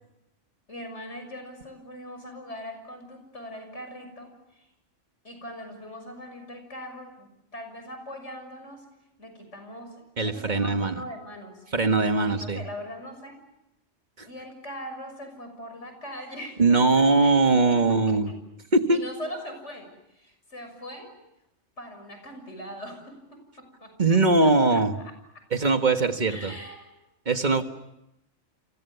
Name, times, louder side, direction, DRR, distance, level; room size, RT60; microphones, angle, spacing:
voice 1, 0.7-4.7 5.2-8.9 9.2-11.8 12.3-13.4 14.3-17.4 17.7-18.4 18.9-21.1 21.8-23.9 24.4-25.1 26.3-27.0 27.6-27.7, equal, 70° left, 6 dB, 6.9 m, -41 dB
voice 2, 10.2-11.0 11.7-12.6 14.2-14.3 16.6-18.3 18.7-19.0 24.0-24.9 25.5-26.5 27.3-27.6, right 3 dB, 40° right, 7 dB, 1.8 m, -21 dB
29.5 x 27.5 x 7.0 m, 0.86 s
omnidirectional pair, 1.3 m